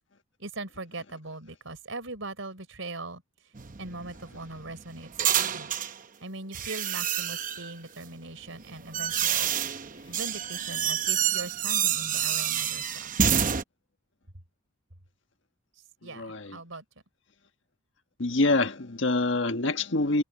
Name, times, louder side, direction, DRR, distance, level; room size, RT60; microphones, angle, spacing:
voice 1, 0.4-3.2 3.8-5.1 5.5-5.7 6.2-9.6 10.1-13.1 16.0-16.8, right 2 dB, 80° right, 4.0 m, -40 dB
sound 1, 3.5-6.0 6.5-7.7 8.5-13.6, right 9 dB, 40° right, 0.8 m, -28 dB
voice 2, 16.1-16.6 18.2-20.2, left 2 dB, 65° left, 1.5 m, -26 dB
head